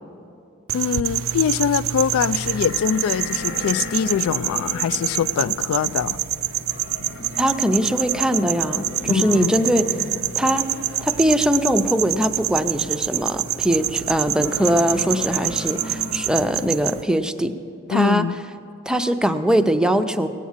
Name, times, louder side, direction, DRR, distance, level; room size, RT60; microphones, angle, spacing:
voice 1, 0.7-6.2 9.1-9.5 17.9-18.3, left 8 dB, 85° left, 17 dB, 0.3 m, -23 dB
sound 1, 0.7-17.0, right 13 dB, 80° right, 0.4 m, -26 dB
sound 2, 2.2-16.8, left 3 dB, 65° left, 0.9 m, -37 dB
voice 2, 7.4-9.9 10.4-10.7 11.0-17.5 17.9-18.3 18.9-20.3, equal, 5° right, 8 dB, 0.5 m, -21 dB
18.0 x 8.4 x 7.3 m, 2.6 s
head